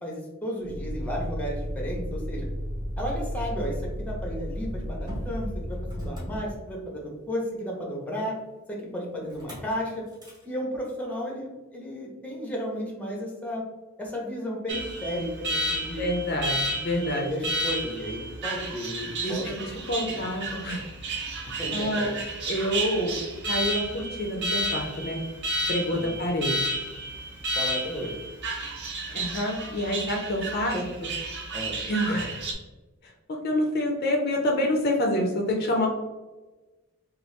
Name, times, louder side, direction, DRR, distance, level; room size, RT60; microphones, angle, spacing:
voice 1, 0.0-2.5 3.0-8.3 8.7-10.0 10.4-13.6 14.0-16.0 17.1-19.7 20.1-20.3 21.6-22.1 25.9-26.1 27.6-28.1 30.7-30.8 31.5-31.8, equal, 5° left, -2 dB, 0.6 m, -33 dB
Motor vehicle (road), 0.6-7.0 9.3-9.7 10.1-10.4, equal, 20° right, 0.9 m, -34 dB
Alarm, 14.7-32.5, right 1 dB, 50° right, 0.5 m, -32 dB
voice 2, 16.0-17.3 19.2-19.6 19.9-20.8 21.7-22.1 22.5-23.2 23.5-25.2 25.7-26.8 29.1-31.1 31.9-32.4 33.3-35.9, left 1 dB, 45° left, 1 dB, 0.4 m, -27 dB
2.9 x 2.3 x 3.1 m, 1.1 s
head